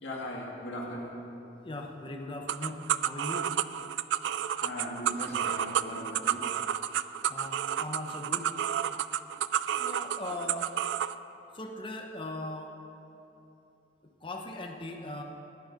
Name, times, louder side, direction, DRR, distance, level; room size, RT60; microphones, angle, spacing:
voice 1, 0.0-1.1 4.6-6.5, equal, 80° left, -3 dB, 2.2 m, -38 dB
voice 2, 1.6-3.6 7.3-8.5 9.7-10.7 11.5-12.8 14.0-15.2, left 2 dB, 30° left, 2 dB, 0.9 m, -39 dB
sound 1, 2.5-11.1, right 10 dB, 80° right, 0.3 m, -31 dB
11.0 x 10.0 x 5.2 m, 2.9 s
head